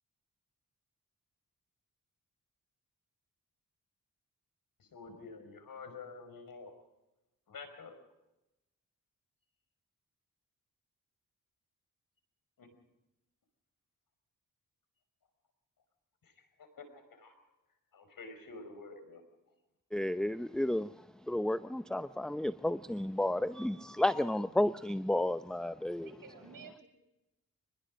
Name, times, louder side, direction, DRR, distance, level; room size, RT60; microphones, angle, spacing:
voice 1, 4.8-6.7 7.5-8.0 12.6-12.7 16.2-17.3 17.9-19.2, left 4 dB, 75° left, 5.3 m, -49 dB
voice 2, 19.9-20.9 21.3-26.1, left 1 dB, ahead, 0.7 m, -32 dB
voice 3, 26.0-26.9, right 5 dB, 70° right, 7.7 m, -51 dB
25.0 x 20.5 x 5.3 m
cardioid pair, 70°, 34 cm